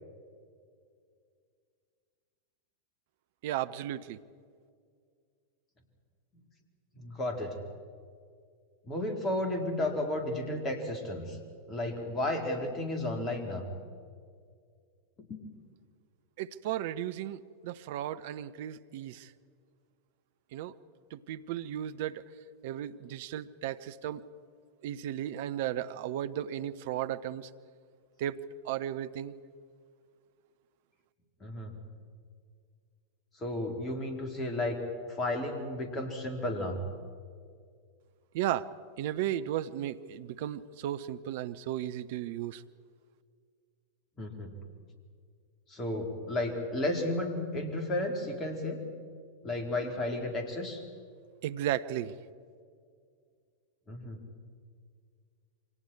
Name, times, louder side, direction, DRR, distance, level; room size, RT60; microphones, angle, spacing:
voice 1, 3.4-4.2 16.4-19.3 20.5-20.7 21.1-22.2 22.6-24.3 24.8-27.5 28.2-28.4 28.6-29.4 38.3-38.7 39.0-42.6 51.4-52.1, right 12 dB, 50° right, 12 dB, 0.8 m, -35 dB
voice 2, 7.0-7.5 8.8-11.4 11.7-13.6 15.2-15.4 31.4-31.7 33.4-34.8 35.1-36.8 44.2-44.5 45.7-48.8 49.4-50.8 53.9-54.2, left 1 dB, 25° left, 3 dB, 4.2 m, -33 dB
29.0 x 24.5 x 4.7 m, 2.2 s
figure-of-eight pair, 90°, 0 cm